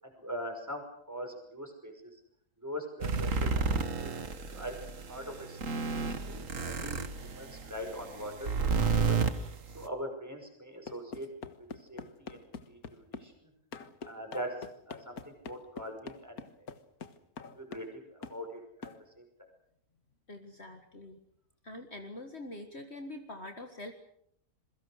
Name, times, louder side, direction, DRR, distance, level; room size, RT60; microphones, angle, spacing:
voice 1, 0.0-2.2 2.6-3.7 4.0-8.5 8.9-9.2 9.7-11.3 11.8-13.3 14.1-14.5 14.9-16.4 17.4-19.5, equal, 10° right, 4 dB, 5.6 m, -42 dB
sound 1, 3.0-9.9, right 5 dB, 55° right, 1.9 m, -31 dB
sound 2, 10.9-13.3 13.7-17.9 18.2-18.4 18.8-19.0, left 5 dB, 70° left, 1.9 m, -45 dB
voice 2, 20.3-21.2 21.6-23.9, left 1 dB, 45° left, 5 dB, 2.0 m, -44 dB
27.5 x 23.0 x 6.5 m, 0.71 s
omnidirectional pair, 1.6 m